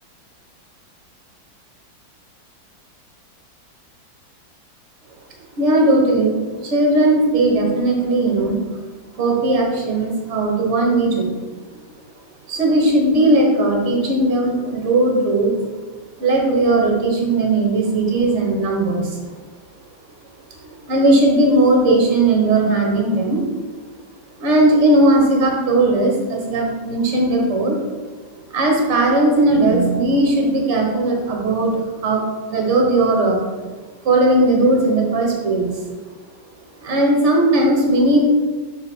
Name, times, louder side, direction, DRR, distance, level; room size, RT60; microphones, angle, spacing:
voice 1, 5.6-6.4 6.6-8.6 9.2-11.4 12.5-15.5 16.2-19.2 20.6-23.4 24.4-27.8 28.5-33.4 34.0-35.7 36.8-38.4, right 2 dB, 40° right, 0 dB, 1.4 m, -17 dB
6.6 x 4.0 x 4.5 m, 1.3 s
omnidirectional pair, 2.1 m